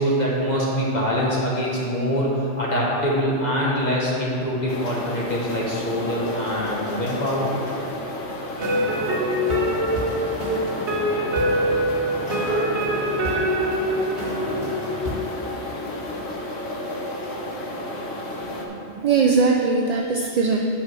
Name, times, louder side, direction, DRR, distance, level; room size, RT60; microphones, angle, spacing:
voice 1, 0.0-7.5, equal, 40° left, -5 dB, 1.4 m, -24 dB
sound 1, 4.7-18.7, left 1 dB, 70° left, 1.3 m, -32 dB
sound 2, 8.6-15.2, equal, 70° right, 1.7 m, -24 dB
voice 2, 18.4-20.7, right 4 dB, 50° right, 1 dB, 0.5 m, -21 dB
6.3 x 6.3 x 7.4 m, 2.8 s
omnidirectional pair, 1.2 m